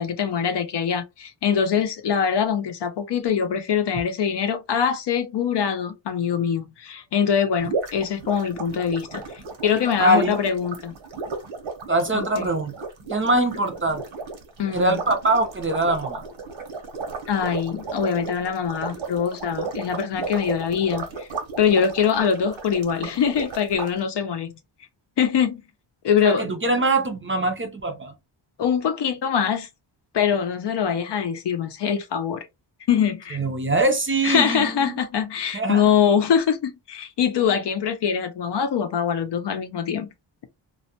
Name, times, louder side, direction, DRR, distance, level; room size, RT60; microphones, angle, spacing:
voice 1, 0.0-11.0 12.1-12.5 14.6-15.0 17.3-21.3 21.6-24.6 25.2-25.6 26.0-26.5 28.6-29.7 30.1-32.5 32.9-33.4 34.2-40.1, left 7 dB, 60° left, 0.6 m, -23 dB
sound 1, 7.6-23.9, right 4 dB, 75° right, 0.9 m, -34 dB
voice 2, 10.0-10.4 11.9-12.7 13.1-14.0 14.7-16.2 26.2-28.1 33.3-35.0 35.5-35.8, right 2 dB, 25° right, 0.5 m, -23 dB
2.3 x 2.1 x 2.7 m
wide cardioid pair, 100°, 47 cm